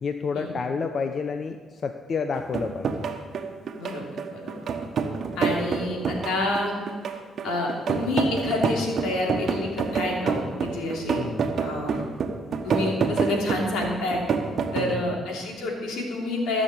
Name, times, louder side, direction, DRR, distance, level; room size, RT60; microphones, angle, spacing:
voice 1, 0.0-3.1 11.2-11.5 14.8-15.0, left 5 dB, 50° left, 7 dB, 0.7 m, -30 dB
sound 1, 2.3-14.9, right 5 dB, 55° right, 1.2 m, -28 dB
voice 2, 3.8-4.6 5.4-6.7 7.4-11.2 11.6-12.0 12.6-14.2 14.7-16.6, left 2 dB, 90° left, -1 dB, 2.9 m, -28 dB
15.0 x 6.3 x 7.9 m, 1.4 s
cardioid pair, 90°, 0 cm